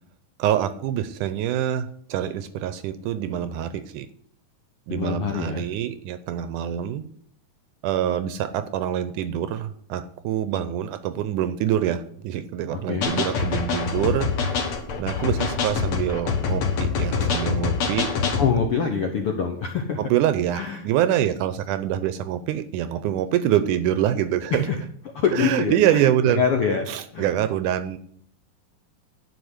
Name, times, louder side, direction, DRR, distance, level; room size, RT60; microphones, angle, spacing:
voice 1, 0.4-4.1 4.9-7.0 7.8-14.3 15.0-18.1 20.0-24.7 25.3-26.4 26.9-28.0, right 11 dB, 80° right, 13 dB, 2.0 m, -25 dB
voice 2, 4.9-5.6 12.7-13.1 18.4-20.0 20.5-20.8 24.5-24.8 25.1-26.9 27.1-27.3, left 6 dB, 70° left, 3 dB, 1.3 m, -25 dB
sound 1, 13.0-18.5, left 5 dB, 50° left, 1.9 m, -25 dB
11.0 x 5.1 x 8.0 m, 0.63 s
omnidirectional pair, 3.9 m